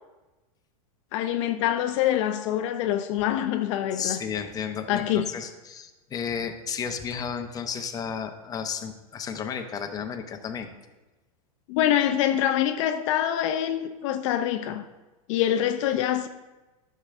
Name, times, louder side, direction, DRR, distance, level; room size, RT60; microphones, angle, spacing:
voice 1, 1.1-4.2 4.9-5.3 11.7-14.9 15.3-16.3, left 11 dB, 55° left, 0.5 m, -25 dB
voice 2, 3.9-10.7, left 7 dB, 20° left, 0.7 m, -33 dB
11.0 x 6.5 x 2.5 m
supercardioid pair, 130°, 19 cm